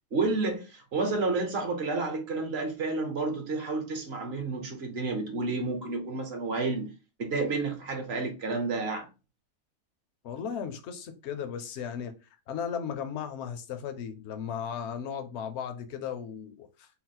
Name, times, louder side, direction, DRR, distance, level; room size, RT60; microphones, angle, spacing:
voice 1, 0.1-6.9 7.2-9.1, right 3 dB, 50° right, 1.1 m, -30 dB
voice 2, 10.2-12.1 12.5-16.9, left 7 dB, 60° left, 0.8 m, -36 dB
4.0 x 2.0 x 4.2 m
omnidirectional pair, 1.5 m